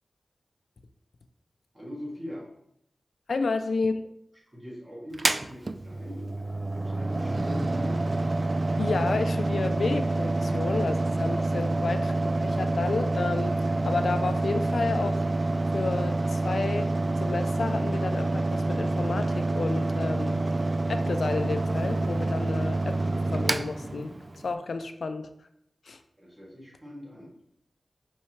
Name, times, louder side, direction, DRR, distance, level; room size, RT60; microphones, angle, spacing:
voice 1, 1.7-2.5 3.4-3.5 4.5-8.0 26.2-27.3, equal, 15° right, -6 dB, 2.5 m, -41 dB
voice 2, 3.3-4.0 8.8-15.2 15.7-16.9 17.2-20.4 20.9-23.0 23.3-24.1 24.4-25.3 25.9-26.0, left 4 dB, 85° left, 8 dB, 0.5 m, -31 dB
Mechanical fan, 5.1-24.5, right 2 dB, 40° right, 0.3 m, -27 dB
5.5 x 5.4 x 3.3 m, 0.76 s
wide cardioid pair, 85°, 0 cm